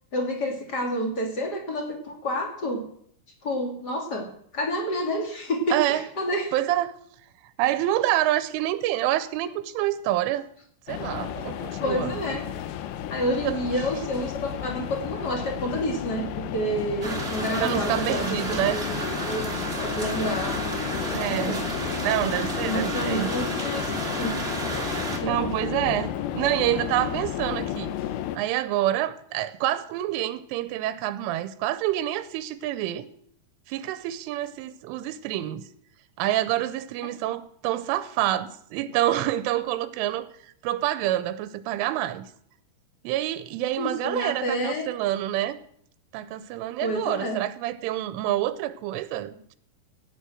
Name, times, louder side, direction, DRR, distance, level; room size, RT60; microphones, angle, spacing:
voice 1, 0.1-2.8 3.4-4.3 4.5-6.5 11.8-12.4 13.1-14.3 14.6-18.4 18.7-19.4 19.8-20.6 21.3-21.6 22.7-24.4 25.2-25.5 43.8-44.8 46.8-47.4, equal, 25° left, 2.5 m, -29 dB
voice 2, 5.7-6.1 6.5-7.0 7.6-10.5 10.9-12.1 13.4-13.9 17.6-18.8 21.1-21.6 22.0-23.3 25.2-27.9 28.4-33.1 33.7-35.7 36.2-40.3 40.6-42.3 43.0-45.6 46.1-49.6, right 13 dB, 90° right, 3.3 m, -27 dB
sound 1, 10.9-28.4, left 10 dB, 85° left, 2.1 m, -32 dB
sound 2, 17.0-25.2, right 2 dB, 30° right, 1.1 m, -32 dB
17.0 x 9.5 x 6.3 m
omnidirectional pair, 5.5 m